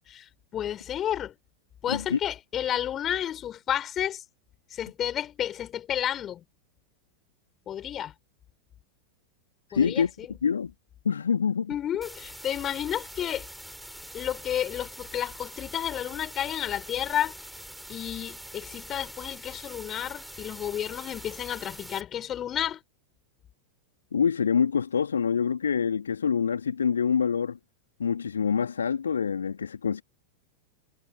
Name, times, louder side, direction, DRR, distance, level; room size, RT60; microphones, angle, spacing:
voice 1, 0.1-1.3 1.8-4.2 4.7-6.4 7.7-8.1 9.7-10.3 11.7-13.5 14.1-17.3 17.9-22.8, left 10 dB, 30° left, 4.8 m, -31 dB
voice 2, 1.9-2.2 9.7-10.1 10.4-10.7 11.0-11.7 24.1-27.6 28.0-30.0, left 6 dB, 70° left, 2.5 m, -26 dB
sound 1, 12.0-22.0, equal, ahead, 6.3 m, -44 dB
figure-of-eight pair, 90°, 0 cm